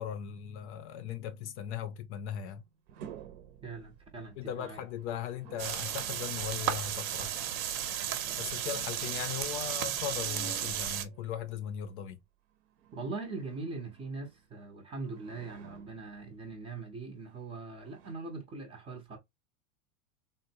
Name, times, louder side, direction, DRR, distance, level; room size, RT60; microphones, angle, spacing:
voice 1, 0.0-2.6 4.4-7.4 8.4-12.2, left 9 dB, 50° left, 0.6 m, -38 dB
sound 1, 2.6-11.9 12.6-14.7 15.0-16.5 17.3-17.4 17.8-18.1, right 8 dB, 50° right, 0.7 m, -54 dB
voice 2, 3.6-4.8 12.9-19.2, right 3 dB, 15° right, 0.6 m, -41 dB
sound 2, 5.6-11.0, right 10 dB, 85° right, 0.9 m, -34 dB
3.6 x 2.2 x 2.7 m
supercardioid pair, 150°, 43 cm